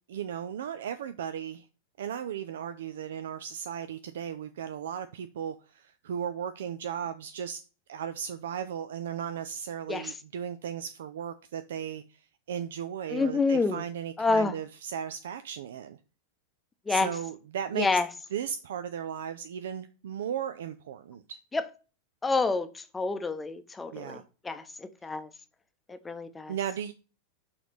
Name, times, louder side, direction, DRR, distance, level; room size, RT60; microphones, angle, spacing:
voice 1, 0.1-1.7 2.0-7.6 7.9-16.0 16.9-17.9 18.3-21.4 23.9-24.2 26.5-26.9, right 8 dB, 60° right, 0.4 m, -36 dB
voice 2, 13.1-13.8 14.2-14.5 16.9-17.1 17.7-18.1 21.5-21.7 22.2-24.2 24.4-25.3 25.9-26.5, left 3 dB, 10° left, 0.7 m, -28 dB
5.8 x 4.0 x 6.2 m
figure-of-eight pair, 90°, 0 cm